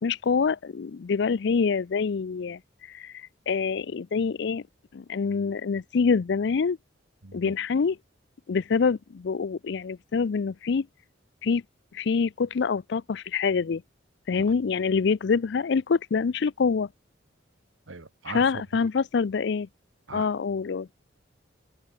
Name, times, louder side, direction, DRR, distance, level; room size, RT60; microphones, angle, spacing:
voice 1, 0.0-2.6 2.9-4.6 4.9-6.8 7.3-8.0 8.5-10.9 11.4-11.6 11.9-13.8 14.3-16.9 18.3-19.7 20.1-20.9, left 5 dB, 60° left, 0.4 m, -26 dB
voice 2, 7.2-7.5 17.9-18.9 20.1-20.3, right 3 dB, 80° right, 1.3 m, -40 dB
open air
head